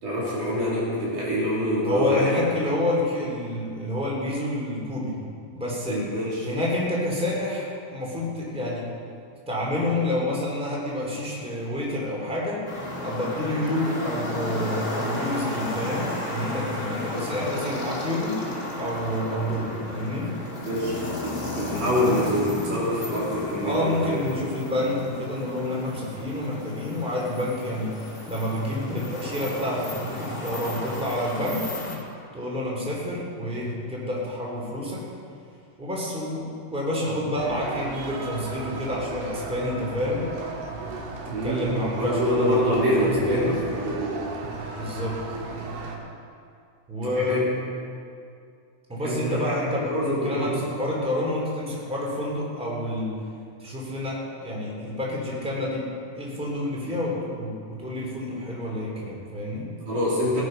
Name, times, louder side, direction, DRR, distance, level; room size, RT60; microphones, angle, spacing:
voice 1, 0.0-2.4 5.9-6.5 17.1-17.3 20.7-24.2 41.3-44.2 47.0-47.5 49.0-49.5 49.8-50.5 59.9-60.4, equal, 55° right, -7 dB, 4.5 m, -25 dB
voice 2, 1.8-5.2 5.5-6.0 6.4-8.9 9.5-12.6 13.0-18.3 18.8-20.3 23.6-27.9 28.3-31.6 32.3-35.0 35.8-40.3 41.2-43.6 44.7-45.2 46.9-47.5 48.9-53.1 53.6-55.9 56.1-59.7, left 1 dB, ahead, -4 dB, 2.7 m, -28 dB
sound 1, 12.7-32.0, left 1 dB, 20° left, 1.7 m, -34 dB
sound 2, 37.4-46.0, right 3 dB, 85° right, 3.6 m, -35 dB
18.0 x 10.5 x 5.4 m, 2.3 s
omnidirectional pair, 4.4 m